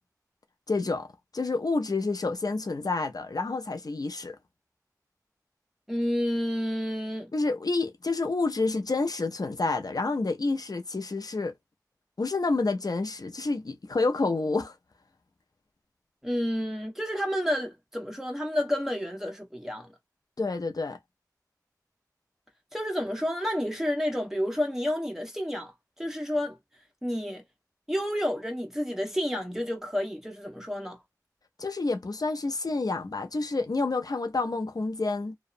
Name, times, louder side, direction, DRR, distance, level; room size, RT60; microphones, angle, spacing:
voice 1, 0.7-1.1 1.3-4.4 7.3-11.5 12.2-14.7 20.4-21.0 31.6-35.4, left 3 dB, 70° left, 0.4 m, -28 dB
voice 2, 5.9-7.3 16.2-19.9 22.7-25.7 26.0-26.6 27.0-27.4 27.9-31.0, equal, 5° right, 1.1 m, -30 dB
2.7 x 2.1 x 2.4 m
wide cardioid pair, 50°, 7 cm